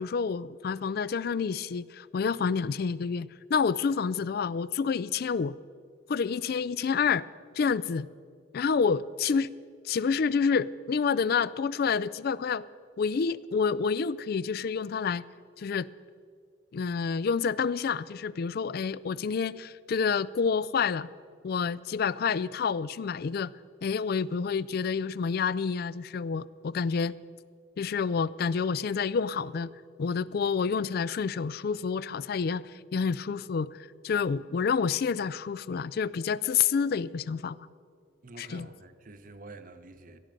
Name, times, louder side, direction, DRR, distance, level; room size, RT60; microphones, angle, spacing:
voice 1, 0.0-5.6 6.1-7.2 7.6-8.1 8.5-9.5 9.8-12.7 13.0-15.2 15.6-15.9 16.7-21.1 21.4-23.5 23.8-27.1 27.8-29.7 30.0-33.8 34.0-37.6 38.4-38.7, left 6 dB, 50° left, 19 dB, 0.3 m, -28 dB
voice 2, 38.2-40.2, right 2 dB, 45° right, 10 dB, 0.8 m, -48 dB
18.0 x 12.5 x 5.2 m, 2.2 s
head